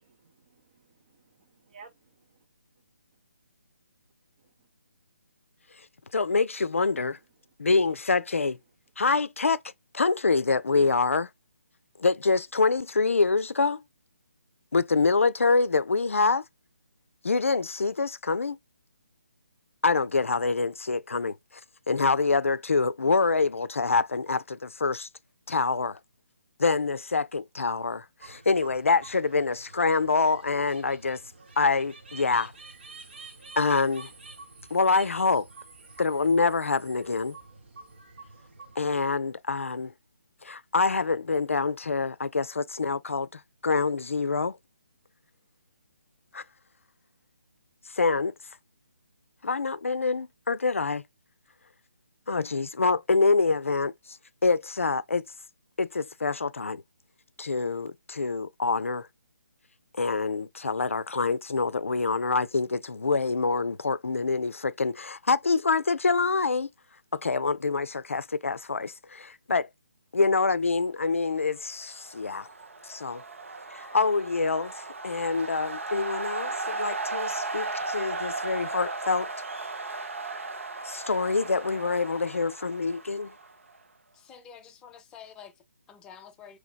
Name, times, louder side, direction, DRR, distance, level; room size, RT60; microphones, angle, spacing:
voice 1, 0.0-2.4, right 5 dB, 35° right, 0.7 m, -55 dB
voice 2, 6.1-7.2 7.6-8.6 9.0-9.6 9.9-11.3 12.0-13.8 14.7-16.4 17.2-18.6 19.8-21.4 21.9-25.1 25.5-26.0 26.6-31.2 31.6-32.5 33.6-34.1 34.7-35.5 36.0-37.4 38.8-39.9 40.4-44.6 46.3-46.4 47.9-48.3 49.4-51.0 52.3-55.2 55.8-56.8 57.4-59.1 60.0-66.7 67.1-69.7 70.1-72.5 72.8-73.2 73.7-79.3 80.8-83.3, left 4 dB, 70° left, 0.4 m, -26 dB
sound 1, 28.2-39.1, right 4 dB, 50° right, 1.1 m, -49 dB
sound 2, 71.8-83.8, right 3 dB, 65° right, 0.7 m, -36 dB
voice 3, 84.1-86.6, left 7 dB, 10° left, 0.5 m, -49 dB
4.9 x 3.2 x 2.3 m
figure-of-eight pair, 145°, 7 cm